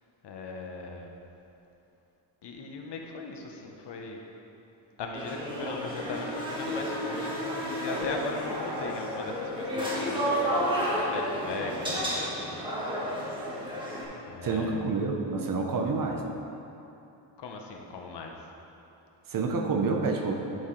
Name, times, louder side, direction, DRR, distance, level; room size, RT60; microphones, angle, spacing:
voice 1, 0.2-1.1 2.4-4.2 5.0-12.7 14.2-14.9 17.4-18.3, left 3 dB, 60° left, 2 dB, 0.9 m, -38 dB
sound 1, 5.1-14.0, equal, 10° right, 1.3 m, -31 dB
voice 2, 14.4-16.2 19.3-20.3, right 4 dB, 45° right, 2 dB, 0.7 m, -28 dB
10.5 x 4.6 x 3.8 m, 2.9 s
wide cardioid pair, 160°, 46 cm